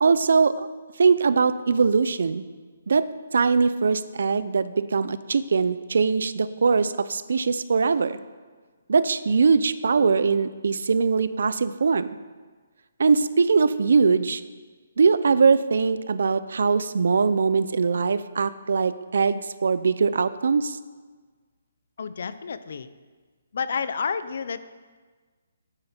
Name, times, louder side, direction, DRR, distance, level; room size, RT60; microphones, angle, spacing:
voice 1, 0.0-0.7 1.0-2.4 2.9-8.2 8.9-12.1 13.0-14.4 15.0-20.8, right 5 dB, 70° right, 14 dB, 0.5 m, -21 dB
voice 2, 22.0-22.9 23.5-24.6, left 6 dB, 55° left, 13 dB, 0.6 m, -30 dB
11.5 x 8.9 x 4.4 m, 1.4 s
hypercardioid pair, 170°, 0 cm